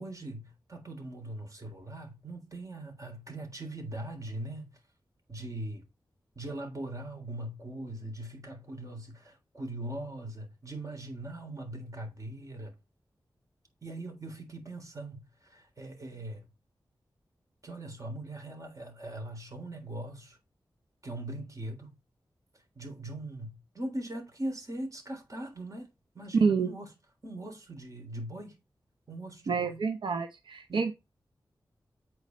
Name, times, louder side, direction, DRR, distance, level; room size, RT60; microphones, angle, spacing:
voice 1, 0.0-4.7 5.3-5.8 6.4-12.7 13.8-16.5 17.6-20.4 21.0-21.9 22.8-25.9 26.1-26.9 27.2-28.6 29.1-29.9 30.7-30.8, right 1 dB, 45° right, 3.5 m, -40 dB
voice 2, 29.5-30.9, right 5 dB, 85° right, 0.7 m, -28 dB
8.5 x 4.7 x 5.2 m
cardioid pair, 60°, 8 cm